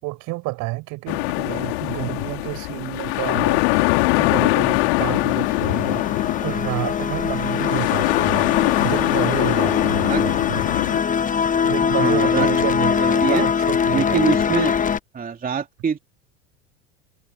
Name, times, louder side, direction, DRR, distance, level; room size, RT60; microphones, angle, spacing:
voice 1, 0.0-8.5 8.8-10.6 11.6-14.6, right 22 dB, 55° right, 6.1 m, -30 dB
sound 1, 1.1-11.0, left 26 dB, 65° left, 3.6 m, -22 dB
sound 2, 3.0-15.0, left 7 dB, 20° left, 1.1 m, -23 dB
voice 2, 12.0-12.5 12.9-13.5 13.9-14.7 15.1-16.0, right 6 dB, 25° right, 2.8 m, -24 dB
hypercardioid pair, 80°, 35 cm